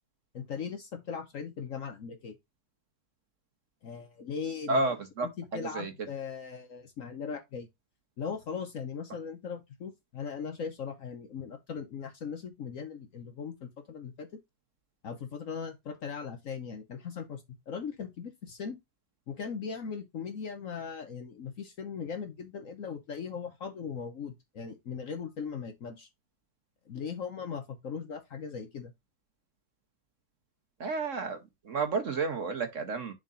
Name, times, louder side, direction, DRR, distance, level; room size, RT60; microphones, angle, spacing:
voice 1, 0.3-2.4 3.8-4.8 5.2-7.7 8.2-14.3 15.0-18.8 19.3-26.1 26.9-28.9, left 6 dB, 55° left, 1.0 m, -39 dB
voice 2, 4.7-5.3 5.5-5.9 30.8-31.4 31.6-33.1, right 3 dB, 50° right, 1.1 m, -31 dB
11.0 x 3.8 x 2.5 m
omnidirectional pair, 2.0 m